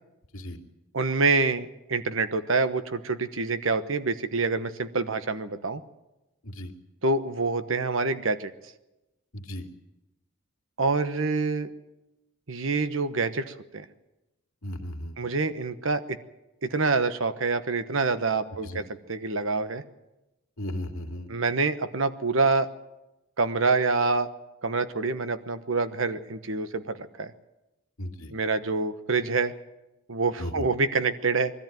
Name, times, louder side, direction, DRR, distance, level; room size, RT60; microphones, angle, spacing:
voice 1, 0.9-5.8 7.0-8.5 10.8-11.7 12.5-13.8 15.2-16.2 16.6-19.8 21.3-22.7 23.4-24.3 24.6-27.3 28.3-29.5 30.1-31.5, right 3 dB, 70° right, 11 dB, 1.1 m, -26 dB
voice 2, 9.3-9.7 14.6-15.1 18.6-18.8 20.6-21.3 28.0-28.3 30.4-30.7, left 1 dB, 85° left, 3 dB, 2.4 m, -35 dB
21.5 x 13.5 x 9.1 m, 0.99 s
head